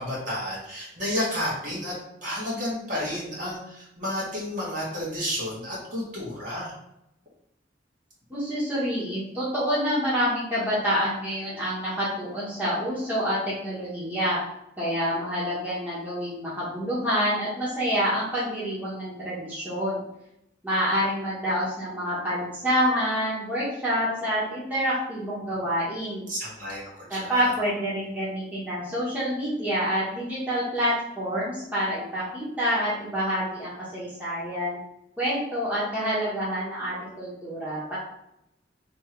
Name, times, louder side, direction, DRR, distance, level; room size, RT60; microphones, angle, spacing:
voice 1, 0.0-1.9 2.2-6.7 26.3-27.5, left 1 dB, 45° right, -6 dB, 1.7 m, -31 dB
voice 2, 8.3-14.4 14.8-20.0 20.6-26.3 27.1-34.8 35.2-38.0, equal, 10° right, -10 dB, 1.3 m, -27 dB
3.5 x 3.1 x 4.5 m, 0.81 s
head